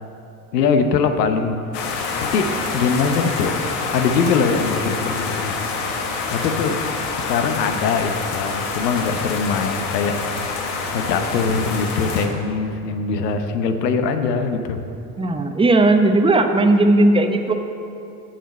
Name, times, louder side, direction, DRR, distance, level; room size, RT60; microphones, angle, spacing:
voice 1, 0.5-1.6 2.3-3.6 3.9-5.6 6.3-6.8 7.2-10.2 10.9-14.8, left 5 dB, 85° left, 7 dB, 0.9 m, -22 dB
sound 1, 1.7-12.3, left 4 dB, 70° left, 1.5 m, -26 dB
voice 2, 15.2-17.5, right 2 dB, 10° right, 6 dB, 0.8 m, -16 dB
7.6 x 6.7 x 8.2 m, 2.7 s
hypercardioid pair, 80°, 48 cm